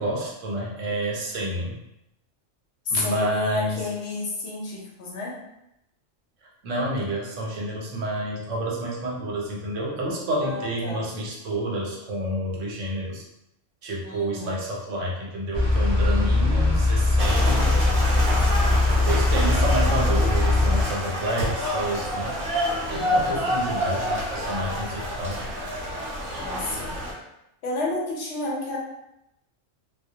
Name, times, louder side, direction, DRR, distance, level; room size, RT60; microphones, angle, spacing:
voice 1, 0.0-1.8 2.9-3.9 6.6-13.2 13.8-17.8 18.8-22.3 22.9-25.4, right 1 dB, 80° right, -3 dB, 1.0 m, -29 dB
voice 2, 2.9-5.3 10.4-11.1 14.0-14.6 16.1-16.7 22.9-23.5 26.4-27.0 27.6-28.8, left 2 dB, 70° left, -3 dB, 0.9 m, -31 dB
sound 1, 15.5-20.8, left 2 dB, 35° right, 0.4 m, -21 dB
sound 2, 17.2-27.1, equal, 60° right, 0.9 m, -28 dB
2.2 x 2.1 x 2.7 m, 0.85 s
omnidirectional pair, 1.3 m